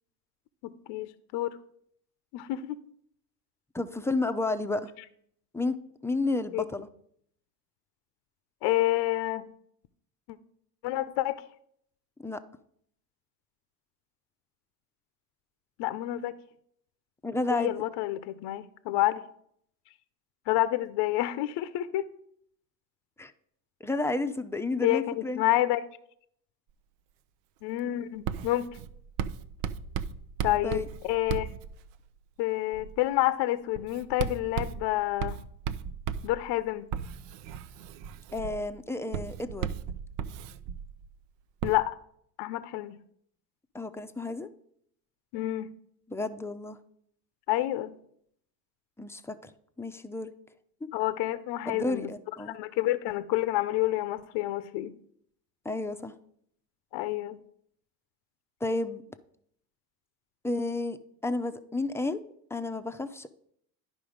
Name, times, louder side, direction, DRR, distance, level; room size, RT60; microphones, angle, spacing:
voice 1, 0.6-1.6 2.3-2.8 6.5-6.6 8.6-9.5 10.8-11.4 15.8-16.3 17.5-19.2 20.5-22.0 24.8-25.8 27.6-28.7 30.4-31.5 32.4-35.4 36.2-36.9 41.6-42.0 42.4-43.0 45.3-45.7 47.5-47.9 50.9-52.1 52.4-54.9 56.9-57.4, left 15 dB, 65° left, 14 dB, 0.7 m, -28 dB
voice 2, 3.7-4.9 5.5-5.8 6.0-6.9 12.2-12.4 17.2-17.9 23.2-23.3 23.8-25.4 30.6-30.9 38.3-39.7 43.7-44.5 46.1-46.8 49.0-49.5 49.8-50.3 51.7-52.6 55.6-56.1 58.6-59.0 60.4-61.0 61.2-63.3, left 2 dB, 5° left, 9 dB, 0.6 m, -31 dB
Writing, 28.2-32.2 32.7-33.0 33.7-41.1 41.6-41.7, right 8 dB, 70° right, 0.7 m, -36 dB
10.5 x 5.1 x 5.0 m, 0.68 s
supercardioid pair, 90°, 45 cm